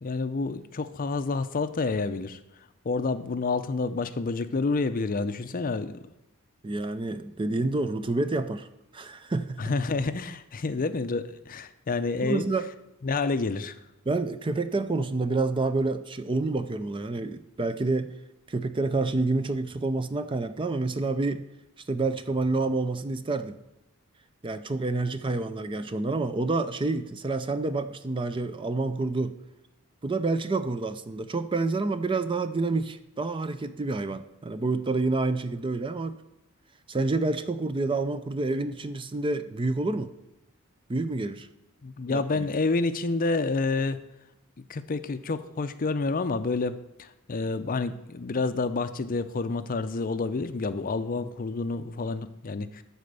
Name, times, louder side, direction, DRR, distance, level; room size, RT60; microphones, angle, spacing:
voice 1, 0.0-2.4 2.8-6.0 9.6-12.5 13.0-13.8 41.8-44.0 44.7-52.8, left 3 dB, 40° left, 11 dB, 0.5 m, -29 dB
voice 2, 6.6-8.7 8.9-9.6 12.2-12.6 14.1-18.1 18.5-21.5 21.9-23.6 24.4-29.3 30.0-36.2 36.9-40.1 40.9-41.5 42.1-42.5, right 3 dB, 25° right, 11 dB, 0.5 m, -28 dB
13.0 x 4.3 x 6.8 m, 0.93 s
head